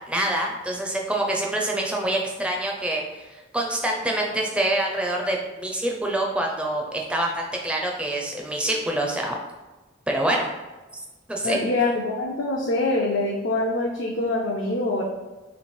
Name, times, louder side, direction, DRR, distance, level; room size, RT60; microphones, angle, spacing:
voice 1, 0.1-9.4 10.1-10.5 11.3-11.6, right 1 dB, 5° right, 0 dB, 0.5 m, -26 dB
voice 2, 11.4-15.0, left 2 dB, 60° left, -2 dB, 0.5 m, -24 dB
3.2 x 3.1 x 4.3 m, 1.2 s
head